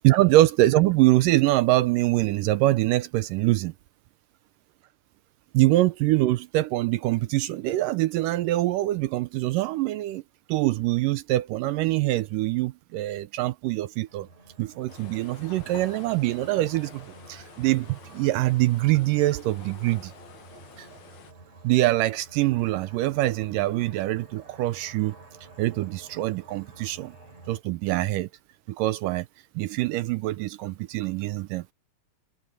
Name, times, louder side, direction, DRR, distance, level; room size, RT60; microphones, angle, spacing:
voice 1, 0.0-3.7 5.5-10.2 10.5-14.3 14.6-20.1 20.8-20.9 21.6-25.2 25.6-27.2 27.5-28.3 28.7-29.3 29.6-31.6, right 17 dB, 80° right, 2.1 m, -24 dB
sound 1, 14.0-27.6, right 3 dB, 45° right, 6.7 m, -50 dB
sound 2, 14.9-21.3, left 8 dB, 85° left, 4.0 m, -49 dB
omnidirectional pair, 4.2 m